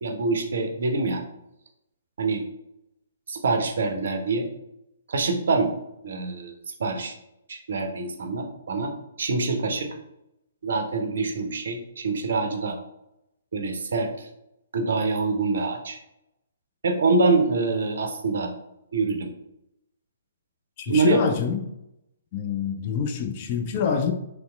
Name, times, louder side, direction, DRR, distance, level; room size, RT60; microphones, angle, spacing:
voice 1, 0.0-1.2 2.2-2.4 3.3-4.5 5.1-5.7 6.0-6.5 6.8-7.1 7.5-8.9 9.2-9.9 10.6-12.8 13.5-14.3 14.7-16.0 16.8-18.5 18.9-19.3 20.9-21.2, right 3 dB, 60° right, 5 dB, 0.5 m, -25 dB
voice 2, 20.8-21.6 22.3-24.1, left 6 dB, 35° left, 5 dB, 0.4 m, -25 dB
3.0 x 2.8 x 2.2 m, 0.84 s
figure-of-eight pair, 125°, 0 cm